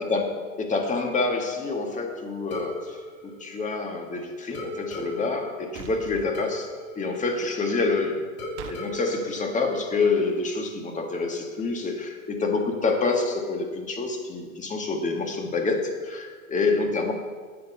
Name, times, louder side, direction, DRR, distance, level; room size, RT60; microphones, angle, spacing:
voice 1, 0.0-6.7 7.0-8.2 8.7-17.1, left 3 dB, 20° left, 3 dB, 1.8 m, -27 dB
sound 1, 2.5-4.1 4.5-7.9 8.4-10.3, left 1 dB, 35° left, 3.3 m, -39 dB
sound 2, 5.8-6.3 8.6-8.8, right 9 dB, 50° right, 1.4 m, -40 dB
9.5 x 8.7 x 5.6 m, 1.5 s
hypercardioid pair, 105°, 40 cm